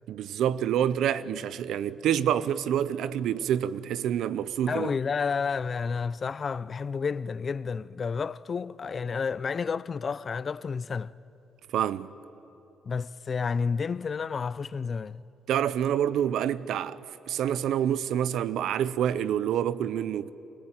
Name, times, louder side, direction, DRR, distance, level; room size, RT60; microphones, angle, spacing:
voice 1, 0.1-4.9 11.7-12.1 15.5-17.0 17.3-20.3, right 10 dB, 80° right, 0.8 m, -27 dB
voice 2, 4.7-11.1 12.9-15.2, left 5 dB, 40° left, 0.6 m, -30 dB
29.0 x 22.0 x 8.9 m
cardioid pair, 90°, 0 cm